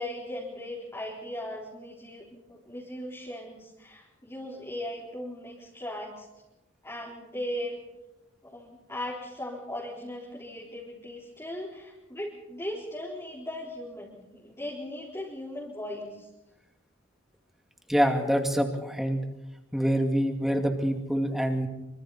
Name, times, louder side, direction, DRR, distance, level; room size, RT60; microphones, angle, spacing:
voice 1, 0.0-6.3 6.8-7.8 8.4-16.3, left 1 dB, 15° left, -5 dB, 4.3 m, -38 dB
voice 2, 17.9-19.2 19.7-21.7, equal, ahead, 4 dB, 2.4 m, -26 dB
26.5 x 25.5 x 4.3 m, 0.97 s
head